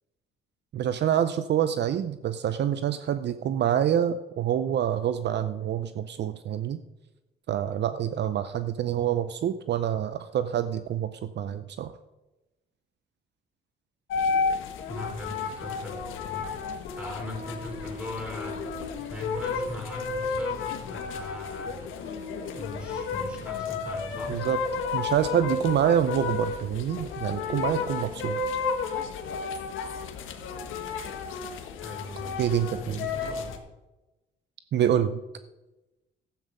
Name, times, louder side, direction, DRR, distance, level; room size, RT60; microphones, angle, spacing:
voice 1, 0.7-6.8 7.5-11.9 24.3-24.6 24.9-28.4 32.4-33.0 34.7-35.2, right 9 dB, 60° right, 12 dB, 0.6 m, -26 dB
sound 1, 14.1-33.6, left 5 dB, 85° left, 1.4 m, -32 dB
voice 2, 14.9-16.4 16.9-18.6 19.1-21.9 22.5-24.4 31.8-33.6, left 1 dB, 5° right, -1 dB, 5.1 m, -39 dB
13.0 x 8.4 x 5.3 m, 1.1 s
cardioid pair, 90°, 20 cm